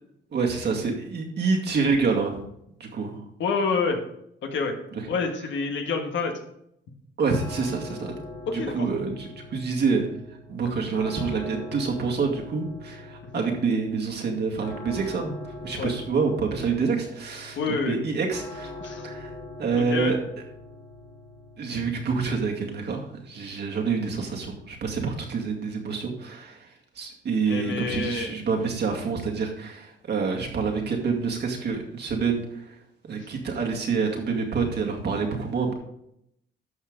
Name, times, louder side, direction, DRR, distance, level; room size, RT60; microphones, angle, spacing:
voice 1, 0.3-2.4 2.8-3.1 7.2-8.2 8.7-10.0 10.5-17.6 17.9-18.7 19.0-19.3 19.6-20.2 21.6-26.6 27.0-32.4 33.0-35.7, right 5 dB, 60° right, 1 dB, 2.2 m, -27 dB
voice 2, 3.4-4.0 4.4-4.8 5.1-6.3 8.4-8.9 13.3-13.4 15.8-15.9 17.5-18.0 18.8-19.1 19.7-20.1 27.5-28.3, left 4 dB, 70° left, 4 dB, 1.7 m, -28 dB
sound 1, 7.2-26.1, left 2 dB, 85° left, 4.2 m, -43 dB
11.5 x 6.5 x 3.8 m, 0.75 s
cardioid pair, 90°, 20 cm